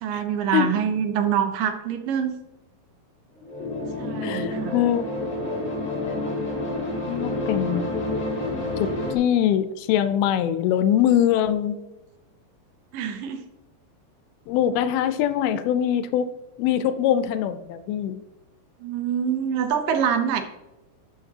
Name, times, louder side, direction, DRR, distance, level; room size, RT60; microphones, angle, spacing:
voice 1, 0.0-2.3 4.0-4.7 12.9-13.4 18.8-20.4, right 8 dB, 75° right, 7 dB, 2.2 m, -25 dB
sound 1, 3.4-9.2, left 2 dB, 30° left, 1.3 m, -29 dB
voice 2, 4.2-5.0 7.1-8.0 8.8-11.8 14.5-16.3 16.6-18.2, left 10 dB, 80° left, 11 dB, 2.4 m, -23 dB
11.5 x 7.1 x 2.8 m, 0.98 s
omnidirectional pair, 4.6 m